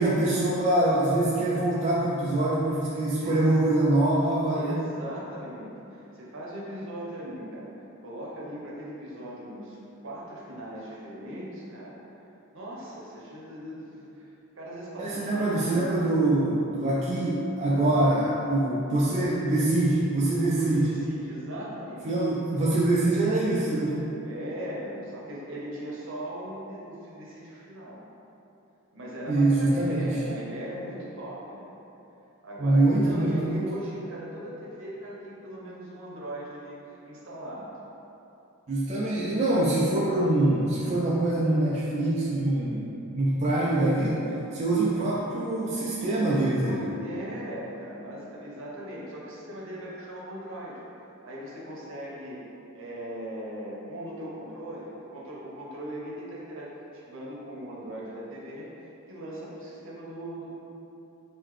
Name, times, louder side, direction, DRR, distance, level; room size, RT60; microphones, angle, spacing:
voice 1, 0.0-4.8 15.0-20.9 22.0-24.1 29.3-30.1 32.6-33.7 38.7-46.9, right 2 dB, 30° right, -6 dB, 0.3 m, -24 dB
voice 2, 3.1-3.6 4.5-7.7 8.0-9.8 10.0-12.0 12.5-15.8 20.5-22.1 24.2-28.0 28.9-31.7 32.4-37.7 46.6-50.8 51.2-52.4 52.7-60.6, right 1 dB, 60° right, -5 dB, 0.8 m, -39 dB
3.8 x 2.7 x 3.1 m, 2.9 s
head